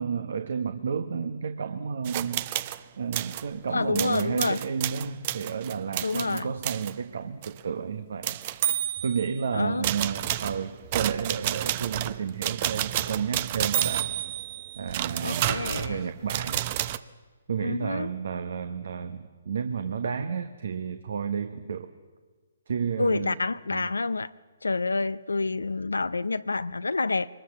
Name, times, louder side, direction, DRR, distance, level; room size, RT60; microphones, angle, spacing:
voice 1, 0.0-2.5 3.0-8.4 9.0-14.1 14.8-16.6 17.5-21.9 22.7-23.4 23.7-23.9, right 6 dB, 65° right, 9 dB, 1.3 m, -31 dB
sound 1, 2.0-2.8 3.1-3.5 3.9-6.9 7.4-7.6 8.2-9.4 9.8-17.0, right 13 dB, 35° right, 0.8 m, -30 dB
voice 2, 3.7-4.6 6.0-6.5 9.5-9.9 15.2-16.0 17.6-18.1 23.0-24.3 24.6-27.3, left 3 dB, 90° left, 14 dB, 0.6 m, -28 dB
23.5 x 20.5 x 7.3 m, 1.4 s
hypercardioid pair, 140°, 0 cm